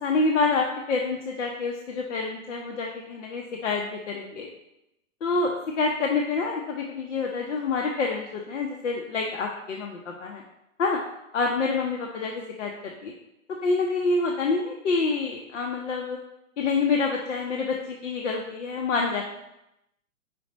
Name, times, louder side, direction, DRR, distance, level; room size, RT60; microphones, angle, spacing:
voice 1, 0.0-4.5 5.2-10.4 10.8-11.0 11.3-13.1 13.6-16.2 16.6-19.2, left 4 dB, 55° left, 1 dB, 0.8 m, -27 dB
5.0 x 4.1 x 4.9 m, 0.88 s
hypercardioid pair, 165°, 43 cm